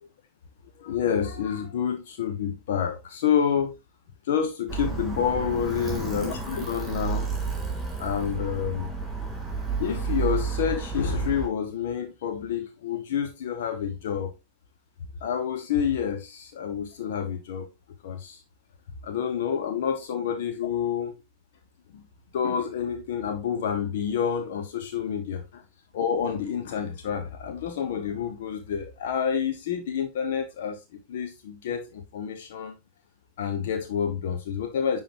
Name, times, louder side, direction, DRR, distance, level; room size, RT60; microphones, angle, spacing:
voice 1, 0.8-3.7 4.3-7.3 8.0-8.9 9.8-14.3 15.2-17.7 18.0-18.4 19.0-21.2 21.9-22.0 22.3-25.6 25.9-30.8 31.1-32.8 33.4-35.0, left 8 dB, 55° left, 0.9 m, -28 dB
Alarm, 4.7-11.5, right 5 dB, 10° right, 3.6 m, -31 dB
10.0 x 3.6 x 3.0 m
figure-of-eight pair, 90°, 0 cm